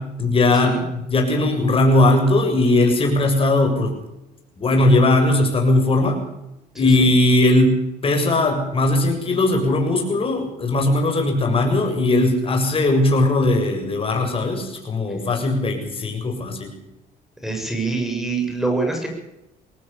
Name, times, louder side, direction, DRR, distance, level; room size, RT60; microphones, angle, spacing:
voice 1, 0.0-3.9 4.6-6.2 6.8-16.7, left 2 dB, 35° left, 3 dB, 7.3 m, -19 dB
voice 2, 6.7-7.1 17.4-19.1, right 3 dB, ahead, 3 dB, 7.1 m, -25 dB
22.0 x 18.5 x 6.9 m, 0.89 s
cardioid pair, 110°, 17 cm